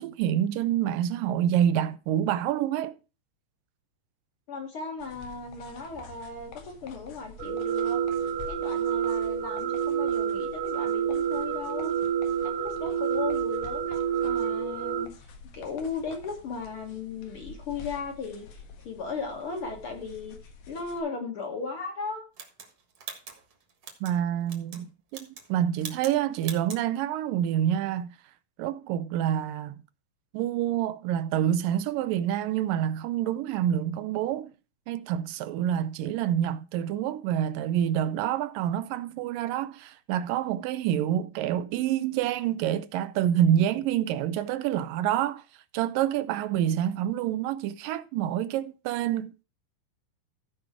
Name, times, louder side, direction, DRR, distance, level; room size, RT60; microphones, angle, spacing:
voice 1, 0.0-2.9 24.0-28.1 28.6-29.8 30.3-34.5 34.9-45.4 45.7-49.4, right 10 dB, 80° right, 2.3 m, -27 dB
voice 2, 4.5-6.5 6.8-8.0 8.5-11.9 12.4-15.3 15.5-20.4 20.7-22.2, left 4 dB, 50° left, 2.0 m, -36 dB
sound 1, 5.0-21.0, left 4 dB, 85° left, 3.3 m, -48 dB
sound 2, 7.4-15.1, right 8 dB, 65° right, 1.7 m, -28 dB
sound 3, 22.4-24.2 24.5-24.8 25.1-25.5 25.8-26.2 26.4-26.8, right 6 dB, 45° right, 2.0 m, -42 dB
15.0 x 5.2 x 4.7 m
omnidirectional pair, 4.0 m